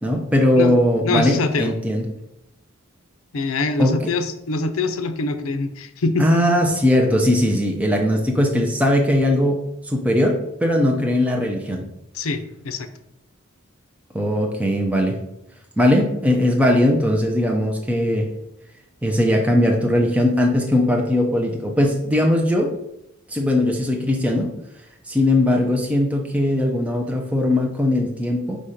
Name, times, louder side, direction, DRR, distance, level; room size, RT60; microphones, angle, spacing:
voice 1, 0.0-2.0 3.8-4.0 6.2-11.8 14.1-15.2 15.8-18.3 19.0-22.7 23.3-24.5 25.1-28.6, left 1 dB, 5° right, 1 dB, 0.6 m, -19 dB
voice 2, 1.0-1.7 3.3-6.3 12.1-12.9, left 3 dB, 75° left, 9 dB, 0.6 m, -24 dB
5.1 x 4.2 x 5.0 m, 0.84 s
head